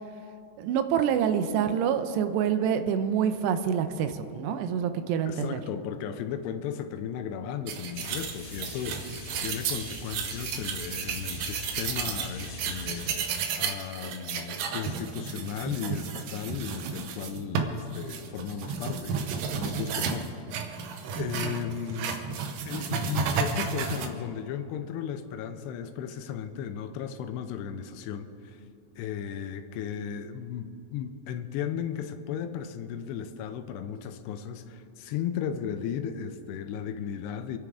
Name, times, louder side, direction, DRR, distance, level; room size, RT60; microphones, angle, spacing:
voice 1, 0.6-5.6 21.2-21.6, right 8 dB, 90° right, 9 dB, 2.9 m, -27 dB
voice 2, 5.3-13.1 13.6-19.2 19.5-20.3 21.1-22.2 22.7-28.6 29.0-37.6, left 8 dB, 85° left, 8 dB, 2.8 m, -35 dB
sound 1, 7.7-24.1, right 6 dB, 70° right, 1.9 m, -33 dB
sound 2, 7.9-13.2, left 2 dB, 55° left, 4.2 m, -42 dB
27.0 x 10.0 x 3.7 m, 2.9 s
omnidirectional pair, 4.8 m